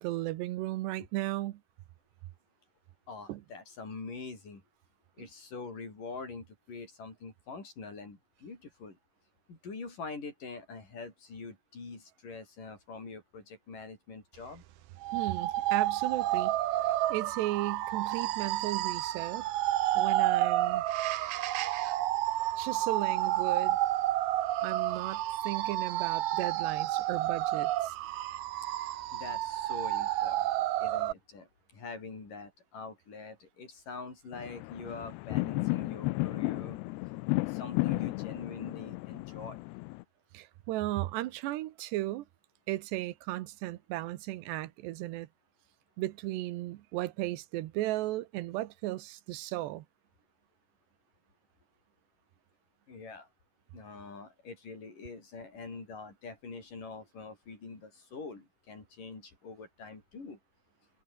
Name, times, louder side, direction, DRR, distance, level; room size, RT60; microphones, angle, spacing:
voice 1, 0.0-1.6 3.3-3.4 5.2-5.3 15.1-16.5 17.1-19.5 20.0-20.8 22.6-23.8 24.6-28.0 40.3-42.3 42.7-45.3 46.0-49.9, right 16 dB, 90° right, 3.2 m, -35 dB
voice 2, 3.1-4.6 5.2-9.0 9.5-14.6 29.1-30.5 30.8-36.8 37.3-39.6 52.9-53.3 53.7-60.4, left 4 dB, 50° left, 8.0 m, -44 dB
sound 1, 15.0-31.1, right 14 dB, 70° right, 2.9 m, -30 dB
sound 2, 34.3-40.0, left 23 dB, 85° left, 2.7 m, -33 dB
omnidirectional pair, 4.8 m